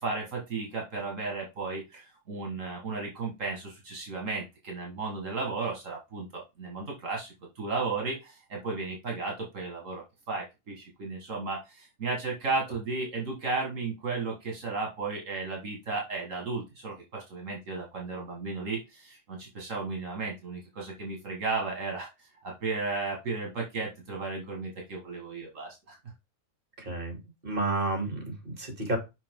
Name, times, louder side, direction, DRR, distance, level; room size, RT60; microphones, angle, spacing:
voice 1, 0.0-26.0, right 3 dB, 75° right, 0 dB, 2.0 m, -34 dB
voice 2, 26.8-29.0, right 2 dB, 40° right, 3 dB, 2.8 m, -31 dB
6.8 x 5.4 x 3.6 m, 0.24 s
omnidirectional pair, 1.4 m